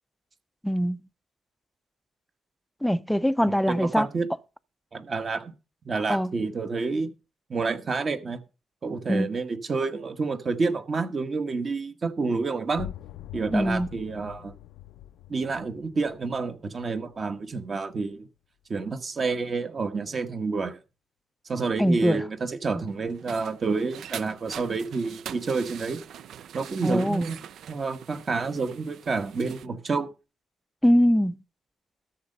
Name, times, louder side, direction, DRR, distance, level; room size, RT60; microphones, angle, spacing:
voice 1, 0.6-1.0 2.8-4.1 6.1-6.3 9.1-9.3 13.5-13.9 21.8-22.2 26.8-27.3 30.8-31.4, equal, ahead, 0.5 m, -22 dB
voice 2, 3.4-4.3 4.9-5.5 5.8-7.1 7.5-8.4 8.8-12.9 13.3-14.5 15.3-18.3 18.7-20.8 21.4-26.0 26.5-27.4 27.7-30.1, right 4 dB, 40° right, 1.2 m, -29 dB
sound 1, 12.7-18.3, left 13 dB, 85° left, 0.5 m, -44 dB
sound 2, 22.9-29.7, right 9 dB, 70° right, 0.5 m, -43 dB
13.0 x 6.6 x 5.4 m
cardioid pair, 90°, 0 cm